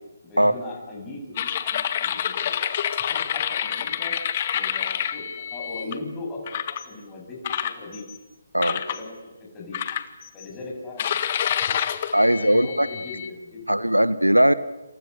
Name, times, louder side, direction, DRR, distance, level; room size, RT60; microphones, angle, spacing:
voice 1, 0.2-2.6 3.0-4.2 4.5-6.5 6.9-8.0 8.6-9.8 10.3-11.8 12.2-14.0, left 2 dB, 15° left, -1 dB, 7.8 m, -39 dB
sound 1, 1.4-5.9 6.5-6.9 7.4-8.2 8.6-9.0 9.7-10.5 11.0-13.3, left 9 dB, 35° left, 1.6 m, -28 dB
voice 2, 12.1-12.9 13.7-14.5, right 1 dB, 90° right, 14 dB, 1.4 m, -19 dB
29.5 x 27.5 x 6.9 m, 1.1 s
figure-of-eight pair, 140°, 0 cm